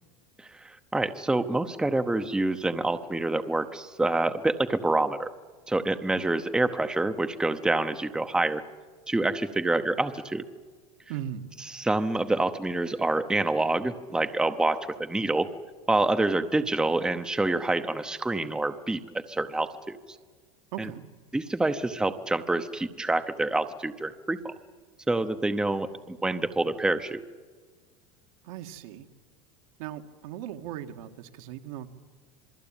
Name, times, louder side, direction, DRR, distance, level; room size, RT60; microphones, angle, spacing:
voice 1, 0.6-5.3 5.7-8.6 9.1-10.4 11.7-15.5 15.9-19.0 19.3-20.0 20.8-20.9 21.3-24.5 25.1-27.2, right 2 dB, 5° right, 9 dB, 0.8 m, -27 dB
voice 2, 11.1-11.4 20.7-21.0 28.4-29.1 29.8-31.9, right 11 dB, 75° right, 5 dB, 2.0 m, -38 dB
27.0 x 21.5 x 9.0 m, 1.5 s
supercardioid pair, 145°, 18 cm